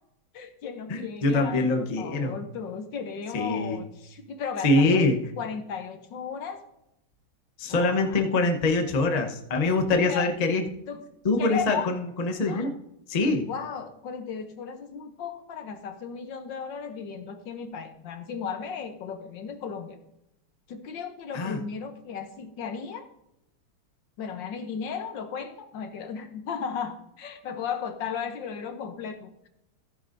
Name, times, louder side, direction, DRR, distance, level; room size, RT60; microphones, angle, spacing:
voice 1, 0.3-5.1 5.4-6.6 7.7-8.2 9.9-10.3 10.9-11.0 11.4-11.9 12.5-12.7 13.5-20.0 20.7-23.1 24.2-29.5, left 6 dB, 65° left, 8 dB, 1.4 m, -35 dB
voice 2, 0.9-2.4 3.3-3.8 4.6-5.2 7.6-10.6 11.2-12.7 13.1-13.5 21.3-21.6, left 2 dB, 40° left, 4 dB, 0.5 m, -24 dB
14.5 x 9.7 x 2.6 m, 0.83 s
omnidirectional pair, 2.4 m